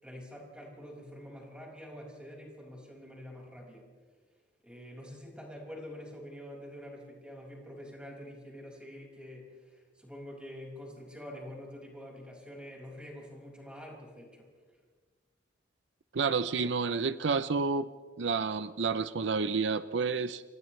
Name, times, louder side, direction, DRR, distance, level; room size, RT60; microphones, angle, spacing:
voice 1, 0.0-3.9 4.6-14.5, equal, 5° right, -2 dB, 5.6 m, -46 dB
voice 2, 16.1-17.9 18.2-20.4, right 4 dB, 75° right, 13 dB, 0.6 m, -30 dB
30.0 x 26.5 x 3.3 m, 1.5 s
head